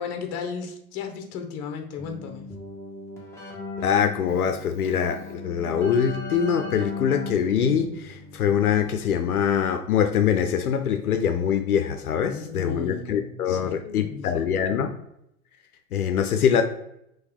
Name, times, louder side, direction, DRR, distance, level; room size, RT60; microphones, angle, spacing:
voice 1, 0.0-2.5 12.2-14.5, left 6 dB, 35° left, 0.9 m, -35 dB
Keyboard (musical), 2.0-9.3, left 2 dB, 5° left, 1.0 m, -38 dB
voice 2, 3.8-14.9 15.9-16.6, left 8 dB, 75° left, 0.6 m, -23 dB
4.4 x 3.1 x 3.5 m
figure-of-eight pair, 100°, 44 cm